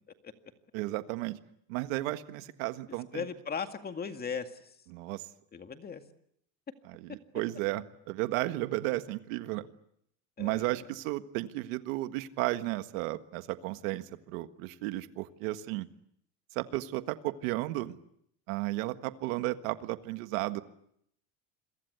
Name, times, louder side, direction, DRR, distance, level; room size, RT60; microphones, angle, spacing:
voice 1, 0.7-1.4 1.7-3.2 4.9-5.2 6.9-9.7 10.4-15.9 16.6-18.0 18.5-20.6, right 18 dB, 90° right, 10 dB, 1.7 m, -34 dB
voice 2, 3.1-4.8 5.5-6.0 10.4-10.8, left 6 dB, 25° left, 7 dB, 2.1 m, -38 dB
28.0 x 23.0 x 8.0 m, 0.72 s
cardioid pair, 145°, 39 cm